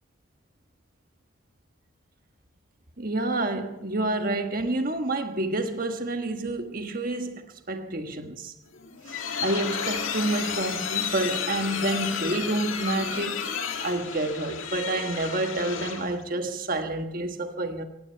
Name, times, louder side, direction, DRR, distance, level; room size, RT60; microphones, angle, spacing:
voice 1, 3.0-8.5 9.1-13.4 13.8-17.8, right 2 dB, 45° right, 1.4 m, -29 dB
sound 1, 8.7-16.2, left 7 dB, 80° left, 1.9 m, -32 dB
17.5 x 17.0 x 4.6 m
head